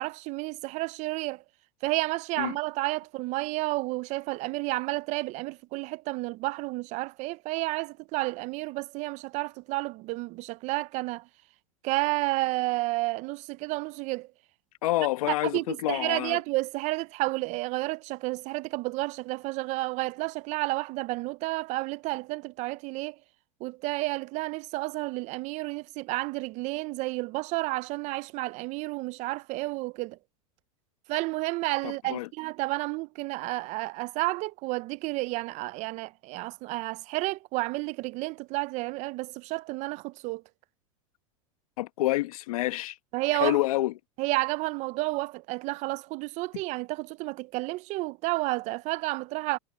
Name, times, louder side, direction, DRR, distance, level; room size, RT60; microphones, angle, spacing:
voice 1, 0.0-1.4 1.8-11.2 11.8-14.3 15.5-23.2 23.6-30.2 31.1-40.4 43.1-43.6 44.2-49.6, right 22 dB, 40° right, 0.5 m, -31 dB
voice 2, 14.8-16.4 31.8-32.3 41.8-43.0 43.3-43.9, left 16 dB, 80° left, 1.2 m, -28 dB
supercardioid pair, 135°, 18 cm